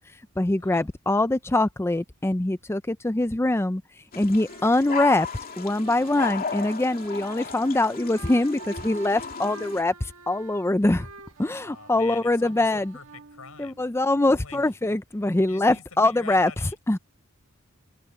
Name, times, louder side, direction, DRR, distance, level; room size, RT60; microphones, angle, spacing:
voice 1, 0.4-3.8 4.2-5.3 5.6-11.1 11.4-12.9 13.6-16.5 16.9-17.0, left 2 dB, 10° left, 0.5 m, -23 dB
sound 1, 4.1-9.8, left 5 dB, 45° left, 2.6 m, -35 dB
sound 2, 4.3-14.1, right 5 dB, 70° right, 1.5 m, -48 dB
voice 2, 11.5-13.9 14.2-14.7 15.5-16.8, left 6 dB, 85° left, 4.4 m, -46 dB
open air
head